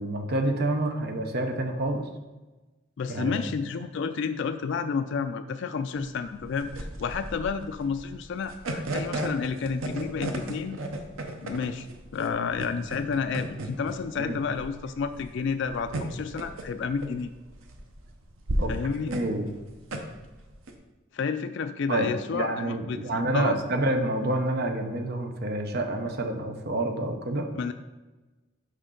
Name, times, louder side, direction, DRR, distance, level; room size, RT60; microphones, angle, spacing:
voice 1, 0.0-2.1 3.1-3.4 14.2-14.4 18.6-18.7 19.1-19.5 21.9-27.5, right 1 dB, 50° right, 5 dB, 0.7 m, -28 dB
voice 2, 3.0-10.8 11.4-11.9 12.1-17.3 18.7-19.1 21.1-23.0 23.3-23.6 27.6-27.7, left 5 dB, 60° left, 8 dB, 0.3 m, -30 dB
sound 1, 6.0-20.7, right 1 dB, 85° right, 0.8 m, -35 dB
6.5 x 5.2 x 3.8 m, 1.2 s
head